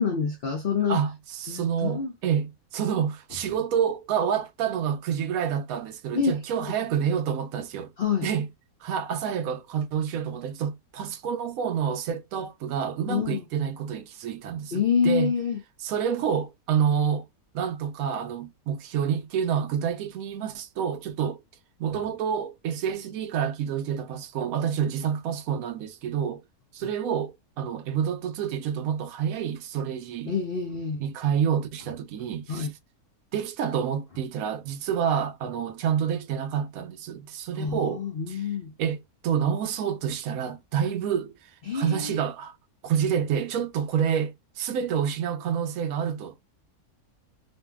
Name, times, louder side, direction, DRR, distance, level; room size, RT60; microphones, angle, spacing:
voice 1, 0.0-1.0 1.5-2.1 6.1-6.3 6.6-6.7 8.0-8.3 13.1-13.5 14.7-15.6 26.8-26.9 30.3-31.0 32.5-32.7 37.6-38.7 41.7-42.2, left 6 dB, 60° left, 0.6 m, -27 dB
voice 2, 0.9-7.9 8.2-8.5 8.8-15.3 15.8-17.3 17.5-21.4 21.8-26.4 26.7-30.3 31.0-32.7 33.3-38.5 38.8-42.6 42.8-46.3, right 8 dB, 70° right, 1.0 m, -28 dB
2.6 x 2.6 x 2.2 m
omnidirectional pair, 1.6 m